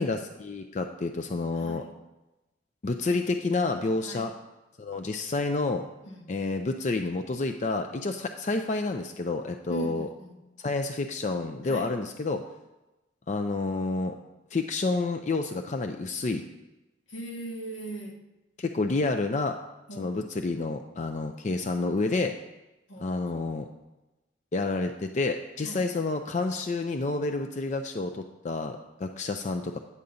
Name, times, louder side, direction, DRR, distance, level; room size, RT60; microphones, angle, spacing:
voice 1, 0.0-1.8 2.8-4.3 4.8-5.8 6.3-10.1 10.6-12.4 13.3-14.1 14.5-16.4 18.6-19.6 20.0-22.3 23.0-23.7 24.5-29.8, left 3 dB, 40° left, 5 dB, 0.4 m, -29 dB
voice 2, 1.5-1.9 4.0-4.3 6.0-6.6 9.7-10.4 11.6-12.0 17.1-18.2 19.9-20.5 22.9-23.5 25.6-25.9, right 2 dB, 85° left, 2 dB, 1.3 m, -40 dB
9.7 x 3.9 x 6.9 m, 1.0 s
head